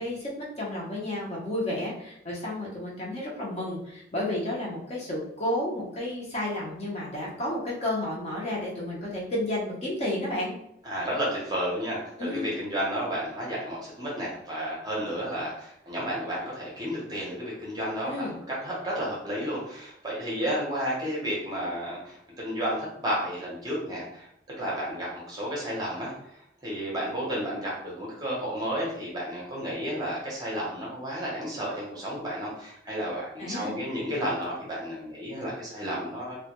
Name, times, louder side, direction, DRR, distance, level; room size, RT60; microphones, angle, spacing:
voice 1, 0.0-10.5 12.2-12.5 18.0-18.3 33.4-33.7, left 1 dB, 35° left, -5 dB, 0.6 m, -31 dB
voice 2, 10.8-24.3 24.6-36.4, equal, 20° right, -5 dB, 0.6 m, -32 dB
2.1 x 2.1 x 2.8 m, 0.76 s
head